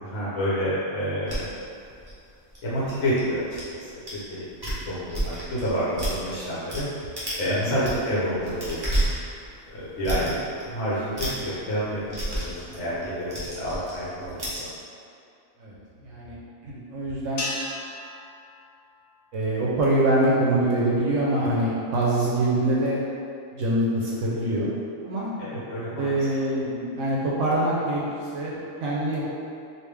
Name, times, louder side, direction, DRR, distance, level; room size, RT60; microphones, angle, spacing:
voice 1, 0.0-1.5 2.6-3.4 3.7-4.5 4.9-6.9 7.4-9.1 9.7-10.3 10.6-14.7 25.4-26.2, equal, 65° left, -9 dB, 1.0 m, -29 dB
sound 1, 1.3-3.6 4.1-4.2 4.5-6.8 7.1-7.4 7.7-14.6, right 1 dB, 20° right, 0.8 m, -31 dB
voice 2, 16.0-16.4 16.7-17.4 19.3-23.0 23.5-24.7 25.0-25.3 26.0-28.0 28.3-29.3, right 1 dB, 70° right, -6 dB, 0.9 m, -24 dB
sound 2, 17.4-19.8, left 1 dB, 90° left, 1.1 m, -36 dB
3.3 x 2.6 x 3.2 m, 2.5 s
omnidirectional pair, 1.4 m